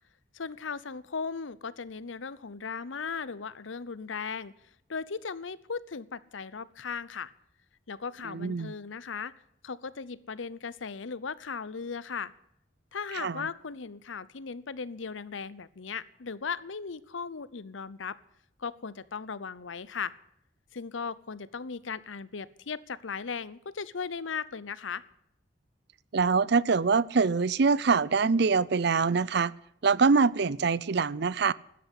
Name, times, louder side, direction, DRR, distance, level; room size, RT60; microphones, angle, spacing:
voice 1, 0.3-4.5 4.9-7.3 7.9-9.3 9.6-12.3 12.9-18.2 18.6-20.1 20.7-25.0, left 5 dB, 85° left, 0.8 m, -37 dB
voice 2, 8.2-8.7 13.1-13.5 26.1-29.5 29.8-31.5, right 4 dB, 60° right, 0.5 m, -24 dB
12.5 x 10.5 x 9.8 m
head